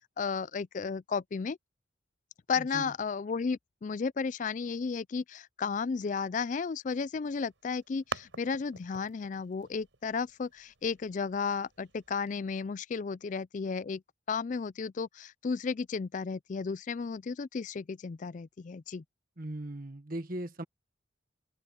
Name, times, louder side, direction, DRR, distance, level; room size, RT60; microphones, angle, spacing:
voice 1, 0.2-1.6 2.5-14.0 14.3-19.0, left 5 dB, 40° left, 0.3 m, -33 dB
sound 1, 7.2-12.3, right 4 dB, 70° right, 6.5 m, -46 dB
voice 2, 19.4-20.6, right 1 dB, 45° right, 1.5 m, -38 dB
open air
head